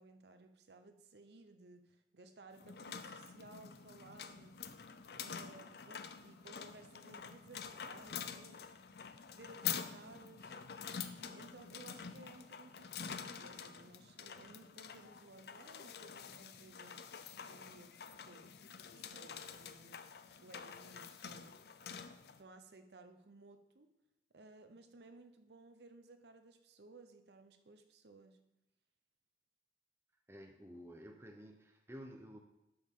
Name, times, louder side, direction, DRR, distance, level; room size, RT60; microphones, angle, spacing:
voice 1, 0.0-4.6 5.1-8.7 9.3-10.6 11.2-17.0 17.4-18.6 18.9-20.0 20.4-21.6 22.4-23.9 24.3-28.4, right 3 dB, 75° right, 7 dB, 0.8 m, -58 dB
sound 1, 2.5-22.4, left 7 dB, 65° left, 0.5 m, -47 dB
voice 2, 30.3-32.4, equal, 15° right, 4 dB, 0.7 m, -52 dB
12.0 x 6.4 x 3.7 m, 0.91 s
head